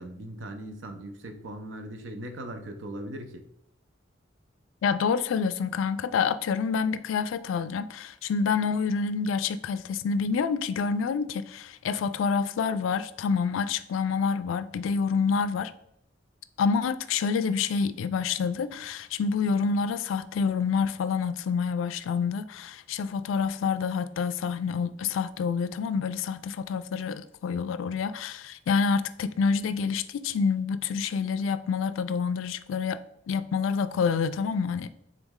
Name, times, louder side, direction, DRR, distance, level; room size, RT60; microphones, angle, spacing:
voice 1, 0.0-3.4, right 1 dB, 80° right, 0.6 m, -39 dB
voice 2, 4.8-15.7 16.6-33.0 33.3-34.9, left 5 dB, 90° left, 0.3 m, -27 dB
3.9 x 3.1 x 3.6 m
head